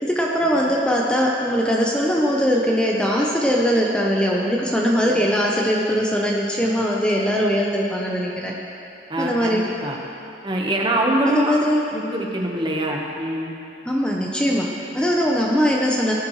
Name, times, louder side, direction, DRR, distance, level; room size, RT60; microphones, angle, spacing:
voice 1, 0.0-8.5 9.2-9.6 11.2-11.8 13.9-16.1, equal, 5° left, -3 dB, 0.8 m, -21 dB
voice 2, 9.1-10.0 10.4-11.5 11.9-13.5, right 1 dB, 25° right, 0 dB, 1.2 m, -24 dB
17.5 x 10.5 x 3.2 m, 2.8 s
head